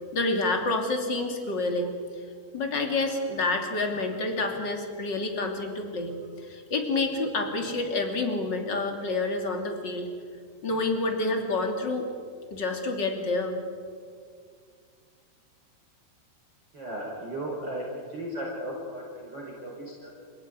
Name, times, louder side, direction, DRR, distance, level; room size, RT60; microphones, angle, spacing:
voice 1, 0.1-2.0 2.5-10.1 10.6-12.1 12.5-13.6, left 2 dB, 30° left, 4 dB, 2.8 m, -28 dB
voice 2, 16.7-20.1, right 1 dB, 25° right, -3 dB, 5.2 m, -36 dB
29.5 x 16.5 x 9.7 m, 2.2 s
omnidirectional pair, 4.9 m